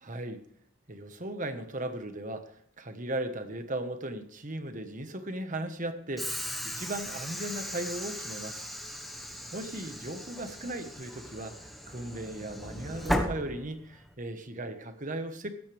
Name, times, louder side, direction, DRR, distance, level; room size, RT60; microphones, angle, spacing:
voice 1, 0.0-0.4 0.9-2.5 2.8-8.7 9.5-11.5 11.9-15.5, right 1 dB, 40° right, 8 dB, 1.4 m, -37 dB
Train / Sliding door, 6.2-14.1, equal, ahead, 1.4 m, -37 dB
16.0 x 12.5 x 3.5 m, 0.64 s
head